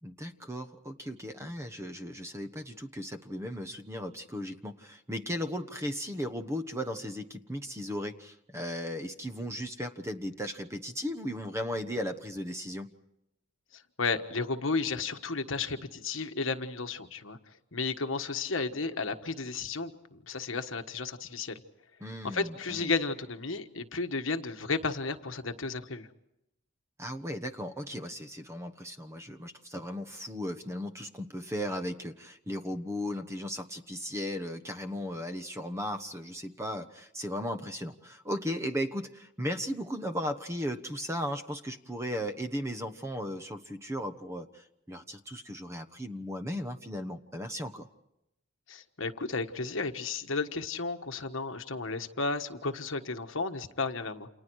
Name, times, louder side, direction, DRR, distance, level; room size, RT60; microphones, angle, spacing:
voice 1, 0.0-12.9 22.0-22.9 27.0-47.9, equal, 15° right, 8 dB, 1.1 m, -36 dB
voice 2, 13.7-21.6 22.2-26.1 48.7-54.3, left 4 dB, 65° left, 7 dB, 1.4 m, -33 dB
29.5 x 28.0 x 4.8 m, 0.85 s
head